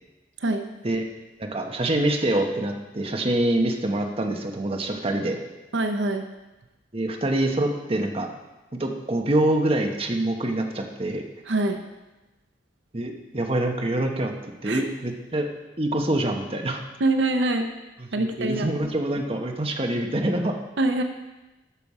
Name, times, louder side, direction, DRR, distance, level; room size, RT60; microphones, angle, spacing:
voice 1, 1.4-5.4 6.9-8.3 8.8-11.2 12.9-14.3 14.6-15.5 15.8-16.8 18.2-20.6, right 1 dB, 35° right, 3 dB, 1.0 m, -25 dB
voice 2, 5.7-6.3 11.5-11.8 14.6-14.8 17.0-17.7 18.1-18.7 20.8-21.0, right 2 dB, 75° right, 6 dB, 0.7 m, -24 dB
12.5 x 5.9 x 4.8 m, 1.1 s
head